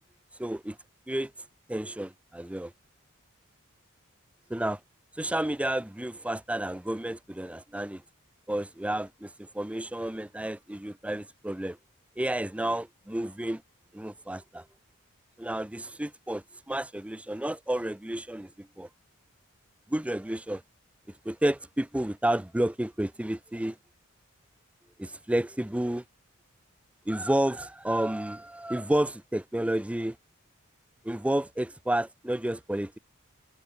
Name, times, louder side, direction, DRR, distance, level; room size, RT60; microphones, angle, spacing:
voice 1, 0.4-0.8 1.1-1.3 1.7-2.7 4.5-4.8 5.1-8.0 8.5-11.8 12.2-13.6 13.9-14.6 15.4-18.9 19.9-20.6 21.2-23.8 25.0-26.0 27.1-30.2 31.0-33.0, right 1 dB, 5° right, 0.5 m, -31 dB
head